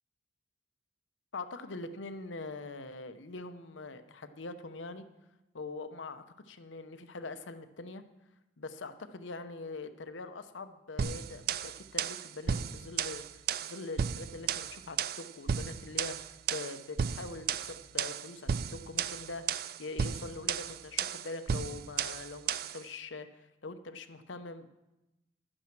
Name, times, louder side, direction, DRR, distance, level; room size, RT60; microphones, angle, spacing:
voice 1, 1.3-5.0 5.5-8.0 8.6-24.7, left 3 dB, 85° left, 10 dB, 0.8 m, -43 dB
sound 1, 11.0-22.8, right 7 dB, 50° right, 0.4 m, -34 dB
11.5 x 8.9 x 6.0 m, 0.99 s
head